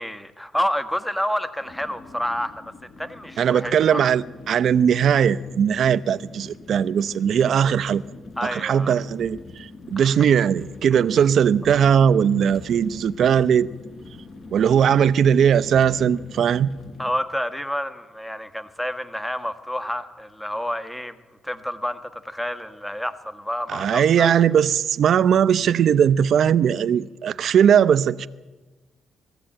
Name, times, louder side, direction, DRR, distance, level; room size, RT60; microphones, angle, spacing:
voice 1, 0.0-2.6 3.0-4.0 8.4-9.0 10.0-10.2 17.0-21.2 21.4-24.3, equal, 5° left, 1.5 m, -29 dB
sound 1, 1.6-17.1, left 3 dB, 45° left, 4.4 m, -44 dB
voice 2, 3.4-8.0 8.4-13.7 14.5-16.7 23.7-28.3, right 8 dB, 65° right, 0.7 m, -19 dB
20.5 x 15.5 x 8.9 m
cardioid pair, 90°, 0 cm